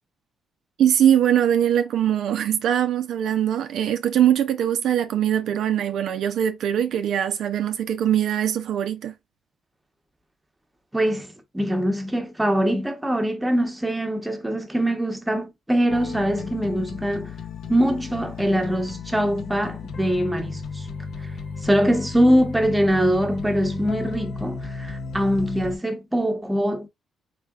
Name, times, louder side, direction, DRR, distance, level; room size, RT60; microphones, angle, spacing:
voice 1, 0.8-9.1, right 10 dB, 75° right, 0.4 m, -22 dB
voice 2, 10.9-17.3 17.7-20.9 21.2-21.3 21.6-26.9, equal, 10° right, 0.9 m, -23 dB
sound 1, 15.9-25.8, left 5 dB, 70° left, 0.7 m, -34 dB
3.8 x 3.3 x 2.3 m
cardioid pair, 90°, 0 cm